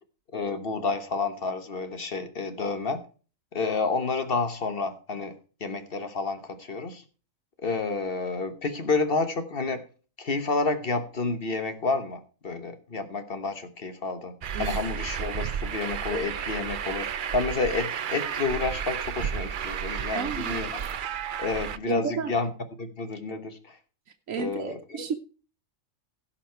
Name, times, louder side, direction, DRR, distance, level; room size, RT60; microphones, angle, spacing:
voice 1, 0.3-3.0 3.5-5.3 5.6-7.0 7.6-9.8 10.2-20.8 21.4-22.5 22.8-23.8 24.4-25.0, left 3 dB, 45° left, 9 dB, 1.3 m, -30 dB
Truck, 14.4-21.8, right 8 dB, 55° right, 0.6 m, -32 dB
voice 2, 20.1-20.6 21.9-22.3 24.3-25.1, right 6 dB, 80° right, 6 dB, 1.3 m, -32 dB
16.0 x 5.7 x 4.5 m, 0.36 s
omnidirectional pair, 1.3 m